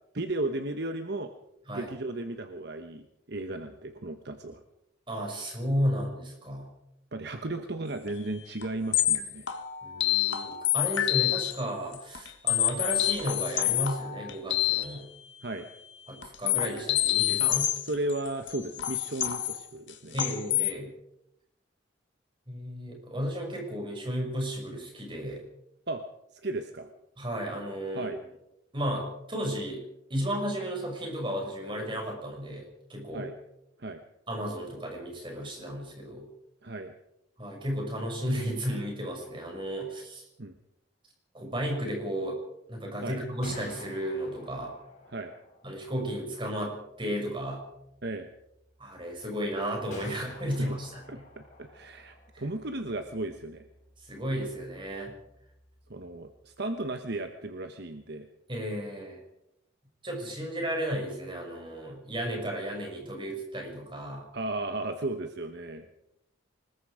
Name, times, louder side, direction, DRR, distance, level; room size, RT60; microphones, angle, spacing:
voice 1, 0.1-1.3 1.7-4.6 7.1-9.5 15.4-15.7 17.4-20.2 25.9-26.0 26.3-26.9 27.9-28.2 33.1-33.3 33.8-34.0 36.6-36.9 40.4-40.5 43.0-43.2 45.1-45.3 48.0-48.3 50.6-50.8 51.1-53.6 55.9-58.3 64.3-65.9, right 2 dB, 55° right, 7 dB, 1.2 m, -35 dB
voice 2, 5.1-6.7 9.8-15.1 16.1-17.6 20.1-20.9 22.5-25.4 27.2-28.1 28.7-29.8 30.1-33.3 34.3-36.2 37.4-40.2 41.3-42.4 42.7-44.7 45.6-47.6 48.8-51.2 52.3-52.4 54.0-55.2 58.5-59.2 60.0-64.3, equal, 25° right, 1 dB, 6.5 m, -33 dB
sound 1, 8.1-8.2 8.6-8.7 8.9-11.6 11.9-14.8 16.2-20.7, left 13 dB, 65° left, 1.9 m, -27 dB
Gunshot gunfire, 43.3-57.0, left 2 dB, 40° left, 5.9 m, -53 dB
25.0 x 21.0 x 5.1 m, 0.84 s
head